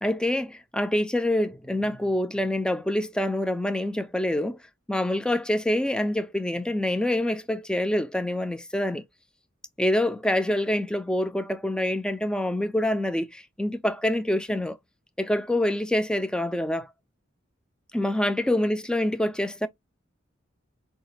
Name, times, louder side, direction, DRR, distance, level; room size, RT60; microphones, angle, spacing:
voice 1, 0.0-4.6 4.9-9.1 9.8-14.8 15.2-16.9 17.9-19.7, left 1 dB, 5° left, 0.3 m, -26 dB
4.8 x 2.3 x 3.0 m
head